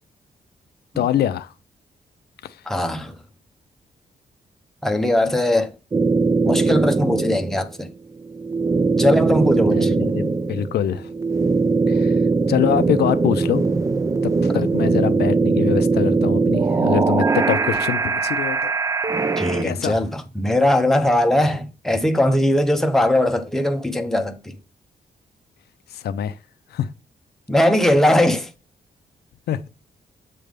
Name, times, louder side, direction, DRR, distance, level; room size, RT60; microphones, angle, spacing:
voice 1, 1.0-1.5 2.4-2.6 9.7-11.1 11.9-12.2 12.5-13.7 14.2-18.7 19.6-20.0 25.9-26.4 26.7-26.9 29.5-29.7, left 10 dB, 85° left, 0.5 m, -24 dB
voice 2, 2.7-3.1 4.8-5.7 6.4-7.9 9.0-9.9 19.4-24.5 27.5-28.5, left 1 dB, 5° left, 0.8 m, -20 dB
sound 1, 5.9-7.7 8.2-19.6, right 4 dB, 20° right, 0.3 m, -20 dB
7.5 x 3.3 x 5.2 m
wide cardioid pair, 130°, 16 cm